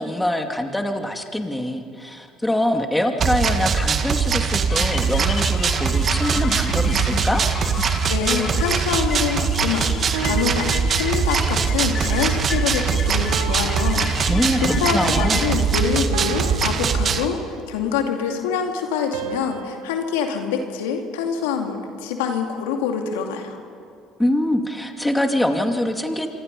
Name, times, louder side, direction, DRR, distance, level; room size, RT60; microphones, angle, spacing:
voice 1, 0.0-7.4 14.3-15.4 24.2-26.3, left 1 dB, 10° left, 4 dB, 2.5 m, -24 dB
sound 1, 3.2-17.2, right 6 dB, 45° right, 1.8 m, -22 dB
sound 2, 4.7-15.6, left 5 dB, 40° left, 2.1 m, -33 dB
voice 2, 8.1-9.9 10.2-10.7 10.9-17.4 17.7-23.6, left 7 dB, 85° left, 3 dB, 2.4 m, -25 dB
sound 3, 10.1-11.7 13.3-15.0 16.1-18.0 19.1-21.5, right 6 dB, 80° right, 1.3 m, -35 dB
26.5 x 24.5 x 5.4 m, 2.4 s
hypercardioid pair, 70°, 0 cm